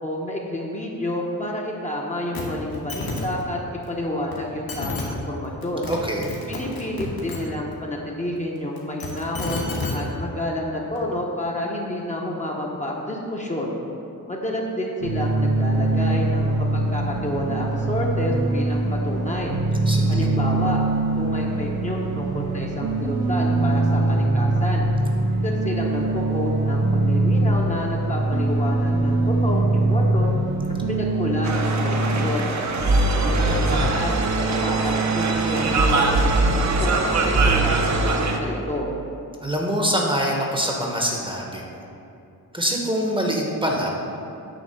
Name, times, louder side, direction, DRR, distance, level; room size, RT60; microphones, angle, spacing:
voice 1, 0.0-5.9 6.5-9.6 9.9-13.7 14.3-19.5 20.1-20.8 21.2-24.9 25.4-30.3 30.9-32.5 33.2-34.2 34.5-38.9, left 1 dB, 20° left, -2 dB, 0.7 m, -29 dB
sound 1, 2.3-2.4 2.7-3.2 4.3-4.4 4.7-5.0 5.6-6.0 6.2-7.4 8.8-9.9 11.0-11.1, left 3 dB, 75° left, 1.5 m, -30 dB
voice 2, 5.9-6.3 19.9-20.3 39.4-41.8 42.5-43.9, equal, 15° right, -1 dB, 0.8 m, -24 dB
sound 2, 15.0-32.3, right 2 dB, 90° right, 1.2 m, -22 dB
sound 3, 31.4-38.4, right 3 dB, 50° right, 0.7 m, -21 dB
9.1 x 3.5 x 6.5 m, 2.7 s
wide cardioid pair, 150°, 36 cm